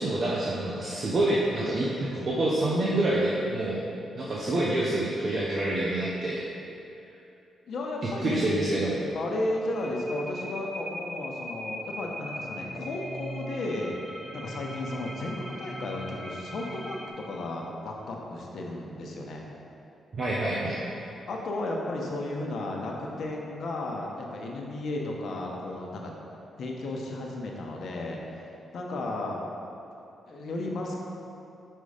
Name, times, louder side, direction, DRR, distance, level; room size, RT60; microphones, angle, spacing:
voice 1, 0.0-3.8 4.1-6.4 8.2-9.0 20.1-20.8, right 1 dB, 50° right, -5 dB, 0.9 m, -27 dB
voice 2, 7.7-8.6 9.1-13.9 14.3-19.5 21.3-26.1 26.6-28.5 28.7-29.4 30.3-31.0, left 2 dB, 65° left, -1 dB, 1.0 m, -34 dB
sound 1, 9.0-17.1, right 1 dB, 5° left, 0.9 m, -40 dB
5.5 x 5.4 x 5.0 m, 2.7 s
cardioid pair, 85°, 0 cm